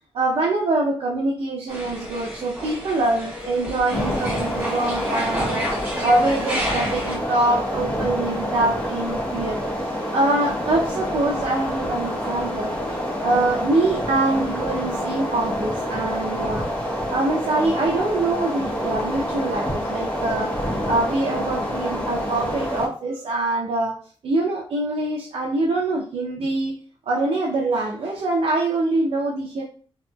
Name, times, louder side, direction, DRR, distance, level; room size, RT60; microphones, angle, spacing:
voice 1, 0.1-16.7 17.1-20.6 20.9-24.0 24.2-29.6, right 2 dB, 75° right, 0.6 m, -24 dB
sound 1, 1.7-7.2, equal, 15° right, 1.2 m, -31 dB
sound 2, 3.9-22.9, equal, 10° left, 1.0 m, -27 dB
3.0 x 2.8 x 2.3 m
wide cardioid pair, 155°, 10 cm